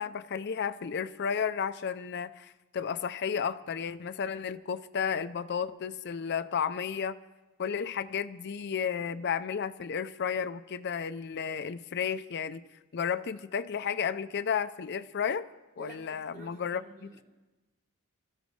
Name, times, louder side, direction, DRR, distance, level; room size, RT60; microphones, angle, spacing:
voice 1, 0.0-7.2 7.6-15.5 15.8-17.1, left 7 dB, 50° left, 12 dB, 0.4 m, -33 dB
voice 2, 15.8-17.2, right 2 dB, 40° right, -2 dB, 3.2 m, -50 dB
24.0 x 13.5 x 3.2 m, 1.1 s
head